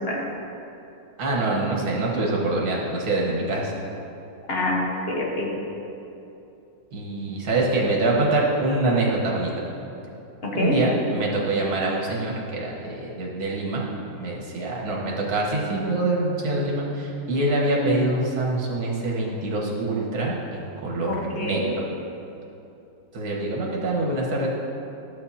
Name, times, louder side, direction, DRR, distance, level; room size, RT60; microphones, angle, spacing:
voice 1, 1.2-3.7 6.9-9.5 10.5-13.8 14.2-21.8 23.1-24.5, right 2 dB, 55° right, -3 dB, 1.7 m, -25 dB
voice 2, 4.5-5.5 10.4-10.8 21.1-21.7, left 2 dB, 35° left, -3 dB, 1.3 m, -26 dB
12.5 x 7.6 x 2.8 m, 2.8 s
omnidirectional pair, 2.1 m